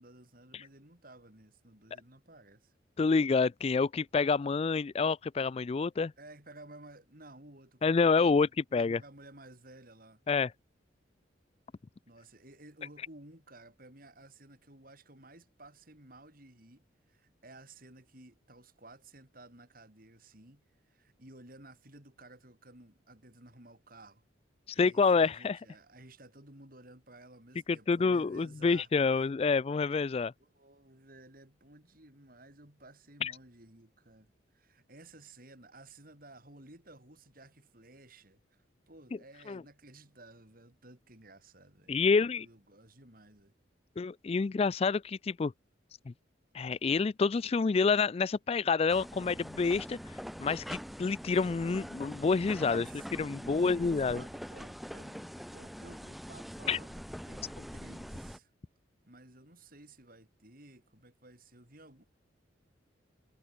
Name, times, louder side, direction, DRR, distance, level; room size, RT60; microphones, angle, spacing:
voice 1, 0.0-2.7 6.2-7.9 8.2-8.4 8.7-10.2 12.1-24.2 24.7-29.3 30.4-43.5 52.5-58.5 59.1-62.0, right 2 dB, 50° right, 5.7 m, -55 dB
voice 2, 3.0-6.1 7.8-9.0 10.3-10.5 24.8-25.6 27.9-30.3 33.2-33.3 39.5-39.6 41.9-42.5 44.0-45.5 46.1-46.2 46.5-50.0 50.4-52.9 53.2-54.2 56.7-56.8, left 4 dB, 30° left, 0.3 m, -28 dB
sound 1, 48.9-58.4, equal, ahead, 1.8 m, -44 dB
head